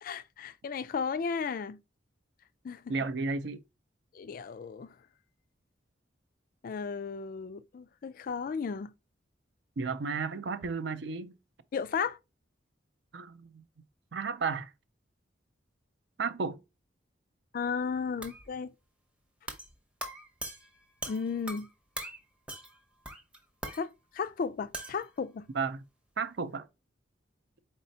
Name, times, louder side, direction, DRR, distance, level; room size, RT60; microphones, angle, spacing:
voice 1, 0.0-1.8 2.6-2.9 4.1-4.9 6.6-8.9 11.7-12.2 17.5-18.7 21.1-21.7 23.7-25.5, left 5 dB, 45° left, 0.3 m, -34 dB
voice 2, 2.9-3.6 9.8-11.4 13.1-13.6 14.1-14.7 16.2-16.6 25.5-25.8 26.2-26.7, right 4 dB, 65° right, 0.5 m, -33 dB
sound 1, 18.2-18.5 19.5-19.7 20.0-21.7 22.0-22.2 22.5-22.8 23.1-23.8 24.7-25.0, right 1 dB, 5° right, 0.7 m, -41 dB
4.2 x 4.2 x 2.7 m
head